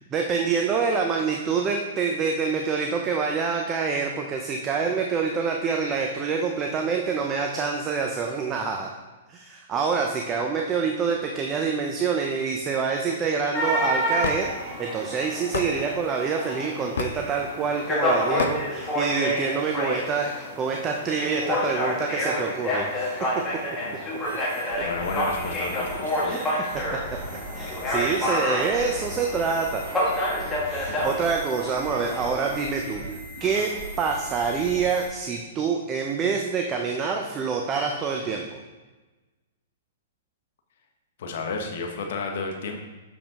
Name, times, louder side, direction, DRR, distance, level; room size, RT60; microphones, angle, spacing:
voice 1, 0.1-8.9 9.3-23.1 26.3-26.4 26.7-26.8 27.5-29.8 30.6-33.0 33.4-33.7 34.0-38.4, right 5 dB, 25° right, 2 dB, 0.6 m, -26 dB
sound 1, 13.5-32.6, equal, 15° left, 1.9 m, -29 dB
Hammer / Wood, 14.2-14.4 15.5-15.7 17.0-17.3 18.4-18.6, left 6 dB, 80° left, 0.5 m, -27 dB
sound 2, 24.2-35.1, right 1 dB, 75° right, 2.1 m, -38 dB
voice 2, 24.8-26.4 30.9-31.1 41.2-42.8, left 4 dB, 65° left, 2 dB, 0.9 m, -32 dB
6.8 x 5.1 x 3.6 m, 1.2 s
hypercardioid pair, 130°, 0 cm